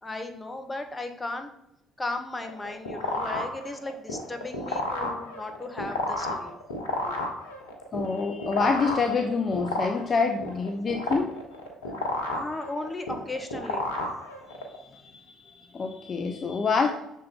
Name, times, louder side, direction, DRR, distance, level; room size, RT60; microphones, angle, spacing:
voice 1, 0.0-1.5 2.0-6.5 12.3-13.9, left 2 dB, 20° left, 5 dB, 1.1 m, -36 dB
sound 1, 2.4-14.8, left 2 dB, 85° left, 0.9 m, -32 dB
voice 2, 7.9-11.4 14.7-16.9, left 4 dB, 40° left, 4 dB, 0.6 m, -27 dB
6.5 x 4.1 x 3.7 m, 0.83 s
hypercardioid pair, 55°, 0 cm